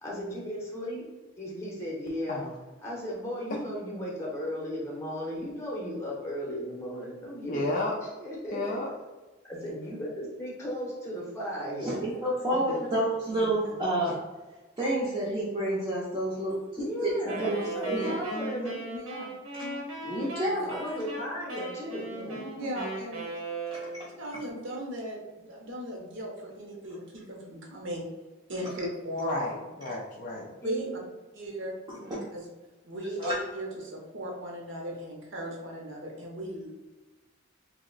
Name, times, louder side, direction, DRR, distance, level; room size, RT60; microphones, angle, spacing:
voice 1, 0.0-1.1 1.4-2.4 2.8-8.8 9.4-12.2 12.5-12.8 16.8-18.7 20.7-22.1 30.6-31.0, equal, 15° left, -4 dB, 0.8 m, -35 dB
voice 2, 7.5-7.9 8.5-8.9 18.3-18.8 19.6-19.9 22.1-22.7 29.2-30.5, left 2 dB, 40° left, -2 dB, 0.4 m, -33 dB
voice 3, 9.5-10.0 13.3-13.7 17.9-18.2 18.9-19.3 20.6-20.7 22.6-23.3 24.2-28.0 28.5-29.6 30.6-30.9 31.3-31.7 32.1-32.5 32.8-36.7, equal, 60° right, -1 dB, 0.7 m, -37 dB
voice 4, 11.8-14.2 14.8-17.6 17.8-18.0 20.0-20.7 22.1-22.4 23.7-24.1 31.9-32.3 33.2-33.4, right 1 dB, 20° right, -9 dB, 0.6 m, -29 dB
Wind instrument woodwind instrument, 17.2-24.2, right 2 dB, 80° right, 1.0 m, -38 dB
2.9 x 2.1 x 3.7 m, 1.2 s
head